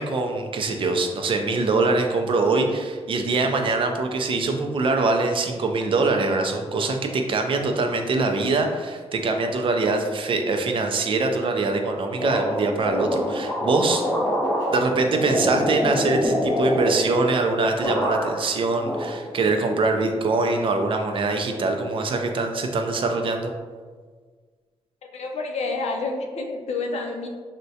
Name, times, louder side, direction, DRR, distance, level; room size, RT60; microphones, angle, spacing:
voice 1, 0.0-14.0 14.7-23.5, right 3 dB, 50° right, 4 dB, 0.4 m, -23 dB
sound 1, 12.2-17.5 17.8-18.5 18.8-19.7, equal, 25° left, 1.0 m, -26 dB
voice 2, 25.0-27.3, left 3 dB, 80° left, 2 dB, 0.4 m, -29 dB
3.5 x 2.1 x 2.7 m, 1.5 s
wide cardioid pair, 110°, 11 cm